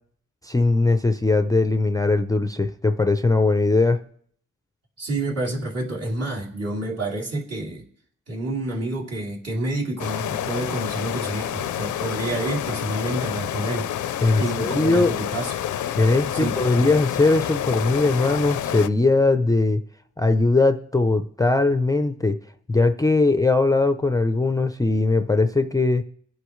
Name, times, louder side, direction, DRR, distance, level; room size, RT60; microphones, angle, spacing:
voice 1, 0.4-4.0 14.2-15.1 16.0-19.8 20.2-22.4 22.7-26.0, left 3 dB, 10° left, 7 dB, 0.5 m, -20 dB
voice 2, 5.0-7.8 8.3-13.9 14.4-15.5 16.3-16.9, right 2 dB, 55° right, -3 dB, 3.1 m, -28 dB
sound 1, 10.0-18.9, left 10 dB, 75° left, 0.5 m, -28 dB
23.5 x 8.1 x 3.1 m, 0.63 s
wide cardioid pair, 130°, 30 cm